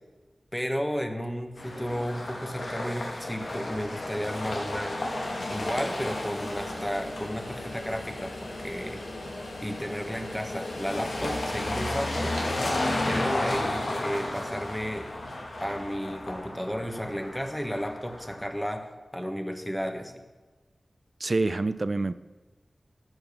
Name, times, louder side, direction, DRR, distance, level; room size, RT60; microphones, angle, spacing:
voice 1, 0.5-5.0 5.5-9.0 9.6-12.4 13.1-15.1 15.6-20.2, equal, 5° left, 1.6 m, -33 dB
sound 1, 1.6-18.5, left 1 dB, 85° left, 2.4 m, -33 dB
voice 2, 21.2-22.2, right 2 dB, 50° right, 0.5 m, -26 dB
13.0 x 9.1 x 7.0 m
wide cardioid pair, 55°, 0 cm